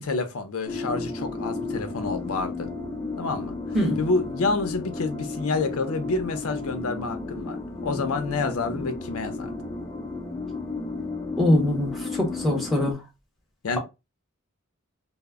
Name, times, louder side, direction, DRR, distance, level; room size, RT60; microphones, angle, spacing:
voice 1, 0.0-2.7 3.2-3.6 4.0-9.5 13.6-13.8, left 3 dB, 90° left, 0.5 m, -28 dB
sound 1, 0.7-12.9, left 3 dB, 15° left, 0.4 m, -33 dB
voice 2, 11.4-13.0, left 1 dB, ahead, 0.8 m, -23 dB
2.0 x 2.0 x 3.4 m
head